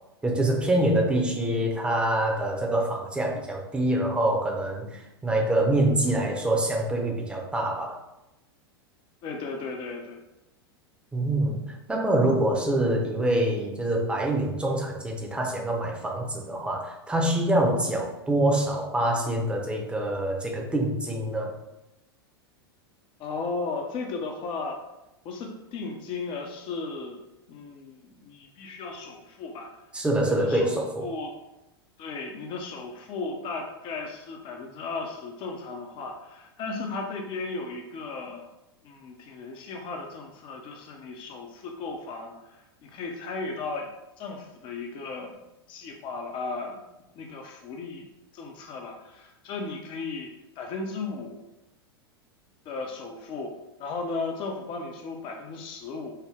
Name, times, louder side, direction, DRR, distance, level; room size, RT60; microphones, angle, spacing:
voice 1, 0.2-8.0 11.1-11.6 11.9-21.5 29.9-31.1, right 1 dB, 10° right, 0 dB, 0.8 m, -25 dB
voice 2, 9.2-10.2 23.2-24.8 25.2-27.2 27.5-29.7 30.2-31.3 32.0-38.5 38.8-43.9 44.2-45.4 45.7-46.8 47.2-48.1 48.3-51.4 52.7-53.5 53.8-56.1, left 3 dB, 40° left, 2 dB, 0.7 m, -35 dB
5.5 x 2.1 x 3.4 m, 0.93 s
figure-of-eight pair, 90°, 13 cm